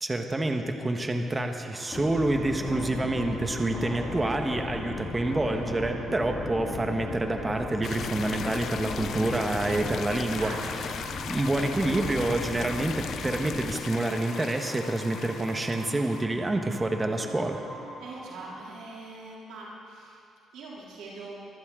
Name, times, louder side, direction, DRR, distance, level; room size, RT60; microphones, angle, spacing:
voice 1, 0.0-10.5 10.8-10.9 11.3-17.6, right 2 dB, 20° right, 4 dB, 1.3 m, -28 dB
sound 1, 1.7-18.6, right 2 dB, 70° right, 3.3 m, -46 dB
sound 2, 1.9-13.8, left 3 dB, 45° left, 2.2 m, -36 dB
sound 3, 7.8-16.2, left 8 dB, 65° left, 0.6 m, -39 dB
voice 2, 10.4-11.0 18.0-20.2 20.5-21.4, right 2 dB, 90° right, -5 dB, 3.2 m, -42 dB
23.5 x 14.0 x 3.8 m, 2.5 s
cardioid pair, 90°, 0 cm